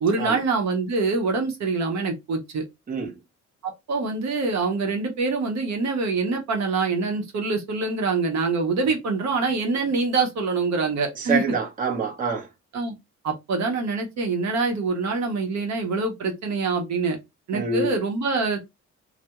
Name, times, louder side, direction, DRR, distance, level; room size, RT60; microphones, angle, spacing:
voice 1, 0.0-2.6 3.6-11.4 12.7-12.9 13.2-17.2 17.5-18.7, right 4 dB, 65° right, 0.8 m, -25 dB
voice 2, 2.9-3.2 11.2-12.5 17.5-17.9, right 4 dB, 30° right, 0.7 m, -26 dB
2.2 x 2.0 x 2.8 m
cardioid pair, 90°, 30 cm